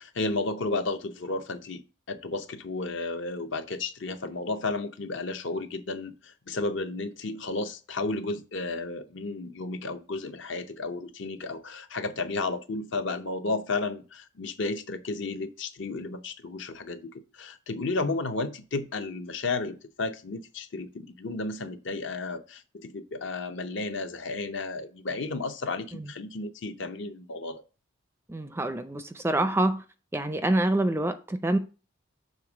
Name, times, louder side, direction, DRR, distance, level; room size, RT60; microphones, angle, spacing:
voice 1, 0.0-1.8 2.1-27.6, left 3 dB, 65° left, 0.7 m, -33 dB
voice 2, 28.3-29.8 30.1-31.6, right 1 dB, 10° right, 0.4 m, -26 dB
6.6 x 3.6 x 6.0 m
head